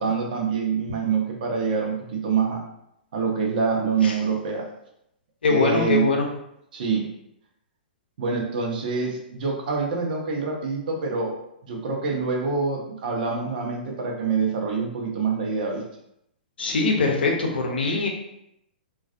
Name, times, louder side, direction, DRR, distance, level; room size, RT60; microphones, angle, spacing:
voice 1, 0.0-2.6 3.1-4.6 5.5-6.1 6.7-7.1 8.2-11.3 11.6-15.8, right 5 dB, 60° right, 0 dB, 0.6 m, -25 dB
voice 2, 5.4-6.3 16.6-18.1, left 3 dB, 75° left, 1 dB, 0.6 m, -22 dB
2.3 x 2.3 x 2.5 m, 0.78 s
hypercardioid pair, 120°, 5 cm